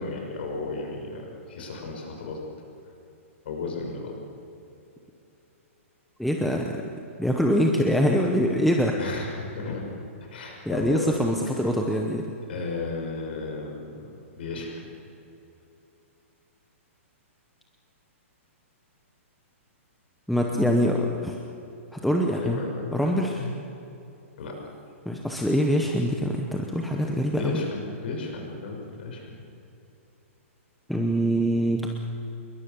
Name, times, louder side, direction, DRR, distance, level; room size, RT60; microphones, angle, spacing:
voice 1, 0.0-2.4 3.4-4.2 9.0-9.9 10.2-11.3 11.6-11.7 12.5-14.8 22.3-23.6 24.4-24.7 27.3-29.4, left 3 dB, 45° left, 1 dB, 6.2 m, -34 dB
voice 2, 6.2-6.7 7.2-9.0 10.7-12.3 20.3-21.3 21.9-22.6 22.9-23.4 25.1-27.6 30.9-31.9, equal, ahead, 0 dB, 0.8 m, -24 dB
27.5 x 22.0 x 6.9 m, 2.9 s
hypercardioid pair, 180°, 8 cm